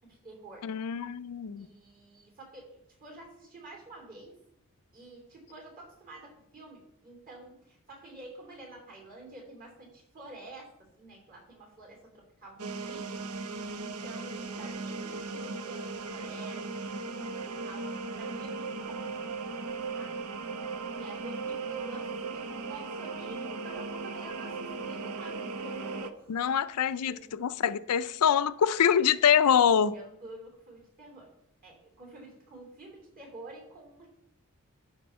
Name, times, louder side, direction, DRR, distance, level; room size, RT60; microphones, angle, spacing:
voice 1, 0.0-0.7 1.6-4.4 4.9-20.2 21.0-26.3 27.0-27.3 29.9-31.3 31.6-34.1, right 2 dB, 40° right, 3.1 m, -49 dB
voice 2, 0.6-1.7 26.3-30.0, left 8 dB, 90° left, 0.4 m, -25 dB
sound 1, 12.6-26.1, right 3 dB, 75° right, 0.7 m, -37 dB
12.0 x 4.3 x 5.5 m
head